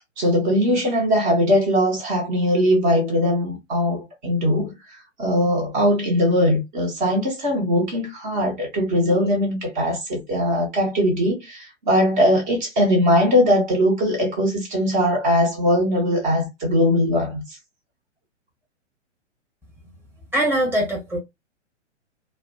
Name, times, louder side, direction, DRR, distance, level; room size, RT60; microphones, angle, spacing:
voice 1, 0.2-4.7 5.2-17.6, equal, 40° right, 0.9 m, -20 dB
voice 2, 20.3-21.2, right 1 dB, 5° right, 0.9 m, -22 dB
2.4 x 2.1 x 2.5 m
figure-of-eight pair, 115°, 37 cm